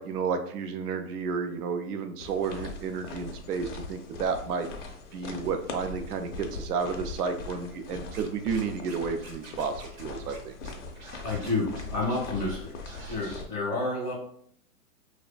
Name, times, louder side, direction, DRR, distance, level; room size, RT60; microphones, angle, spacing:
voice 1, 0.0-4.7 5.1-9.7 10.0-10.5, right 5 dB, 75° right, 7 dB, 0.5 m, -31 dB
sound 1, 2.2-13.4, left 3 dB, 55° left, 0.5 m, -41 dB
Scratching (performance technique), 8.1-9.0 9.2-10.0 10.3-10.4 10.6-12.6 12.9-13.4, right 2 dB, 60° right, 1.0 m, -48 dB
voice 2, 11.2-12.7 13.1-14.1, left 2 dB, 5° right, -12 dB, 0.4 m, -30 dB
2.4 x 2.1 x 2.4 m, 0.63 s
hypercardioid pair, 140°, 46 cm